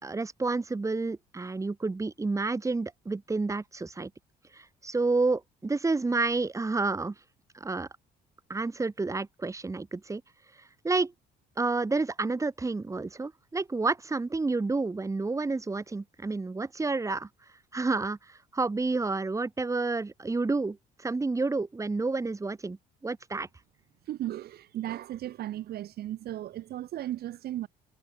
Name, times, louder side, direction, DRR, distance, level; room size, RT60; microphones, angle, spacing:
voice 1, 0.0-4.1 4.5-7.2 7.5-7.9 8.5-10.2 10.6-11.1 11.6-17.3 17.7-22.8 23.0-23.5, right 3 dB, 20° right, 5.4 m, -30 dB
voice 2, 24.1-27.7, right 13 dB, 65° right, 7.8 m, -36 dB
cardioid pair, 110°, 17 cm